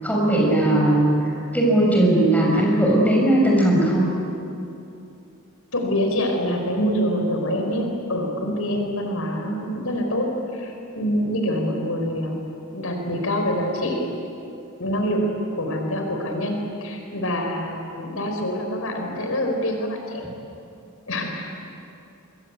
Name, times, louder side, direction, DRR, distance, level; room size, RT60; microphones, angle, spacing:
voice 1, 0.0-1.2 1.5-4.1, right 1 dB, 5° left, -2 dB, 6.5 m, -18 dB
voice 2, 5.7-12.4 12.7-14.1 14.8-15.2 15.6-20.2 21.1-21.6, equal, 80° left, 3 dB, 4.6 m, -25 dB
27.0 x 22.0 x 8.5 m, 2.7 s
head